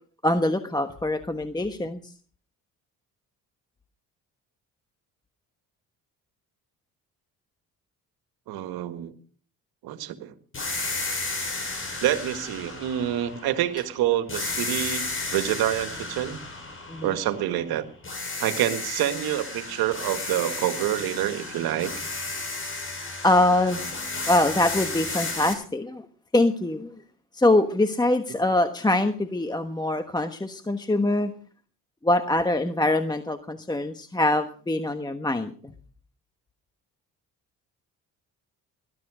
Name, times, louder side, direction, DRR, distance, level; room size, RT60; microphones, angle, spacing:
voice 1, 0.2-2.1 16.9-17.1 23.2-23.8 24.3-26.1 26.3-26.9 27.3-31.3 32.0-35.5, left 2 dB, 10° left, 8 dB, 1.2 m, -23 dB
voice 2, 8.5-9.1 9.8-10.3 12.0-16.4 17.0-17.8 18.4-21.9, right 12 dB, 85° right, 10 dB, 1.9 m, -27 dB
sound 1, 10.5-13.8 14.3-17.7 18.0-25.5, left 3 dB, 35° left, 7.7 m, -33 dB
20.0 x 12.5 x 5.0 m, 0.43 s
cardioid pair, 90°, 36 cm